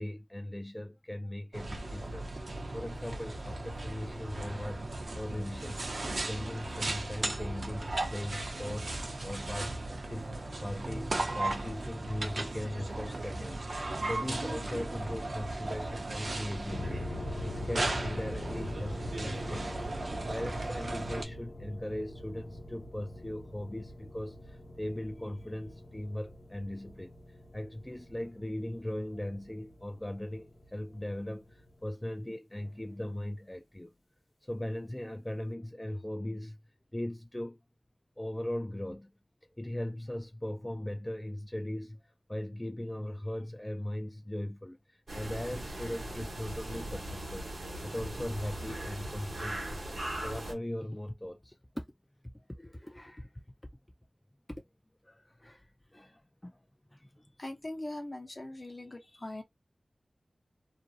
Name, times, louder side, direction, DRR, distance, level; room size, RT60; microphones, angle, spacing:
voice 1, 0.0-2.3 2.7-4.9 5.1-5.9 6.3-9.0 9.2-9.7 10.1-19.9 20.3-27.1 27.5-33.9 34.4-36.6 36.9-37.6 38.2-39.1 39.6-42.0 42.3-47.5 47.8-51.8 52.3-53.4 54.5-54.6 55.0-55.6 55.9-56.6 56.9-57.2, left 1 dB, 15° left, 0.3 m, -39 dB
sound 1, 1.5-21.2, right 2 dB, 70° right, 0.5 m, -36 dB
sound 2, 16.7-31.9, left 1 dB, 90° left, 0.9 m, -44 dB
sound 3, 45.1-50.5, right 1 dB, 90° right, 0.9 m, -39 dB
voice 2, 57.4-59.4, left 1 dB, 45° left, 0.7 m, -41 dB
2.5 x 2.0 x 2.6 m
wide cardioid pair, 45°, 0 cm